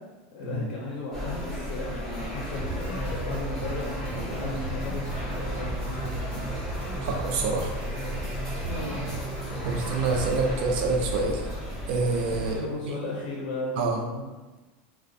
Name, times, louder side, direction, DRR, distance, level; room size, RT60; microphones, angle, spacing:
voice 1, 0.3-6.5 8.6-9.1 9.6-9.8 12.3-14.3, left 2 dB, 65° left, -5 dB, 0.5 m, -36 dB
sound 1, 1.1-12.6, equal, 5° left, 0.6 m, -34 dB
sound 2, 2.6-10.6, right 2 dB, 40° right, 0.8 m, -36 dB
voice 2, 7.0-7.7 9.7-11.4 11.9-12.6 13.8-14.0, right 3 dB, 60° right, 2 dB, 0.4 m, -26 dB
2.4 x 2.1 x 2.6 m, 1.2 s
supercardioid pair, 160°, 5 cm